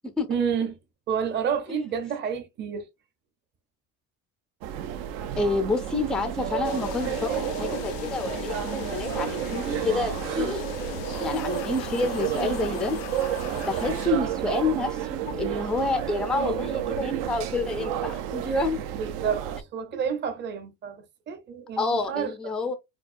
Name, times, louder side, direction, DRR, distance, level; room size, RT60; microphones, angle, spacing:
voice 1, 0.3-0.8 1.1-2.9 18.9-22.3, right 7 dB, 35° right, 0.7 m, -29 dB
sound 1, 4.6-19.6, right 10 dB, 85° right, 0.7 m, -31 dB
voice 2, 5.4-10.7 11.2-13.0 13.6-18.8 21.8-22.8, left 3 dB, ahead, 0.3 m, -28 dB
sound 2, 6.6-14.1, left 14 dB, 80° left, 0.5 m, -38 dB
4.6 x 2.2 x 2.5 m
cardioid pair, 160°, 32 cm